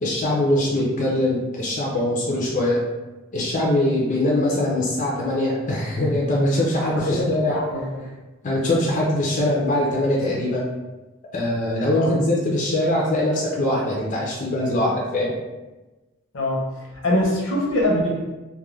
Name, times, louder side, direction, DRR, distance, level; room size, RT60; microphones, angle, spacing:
voice 1, 0.0-2.8 3.3-7.6 8.4-10.6 11.3-15.3, left 1 dB, 40° left, -3 dB, 0.4 m, -22 dB
voice 2, 6.9-8.0 11.9-12.2 16.3-16.7 17.0-18.2, left 1 dB, 75° left, -2 dB, 0.7 m, -23 dB
2.3 x 2.1 x 3.1 m, 1.1 s
head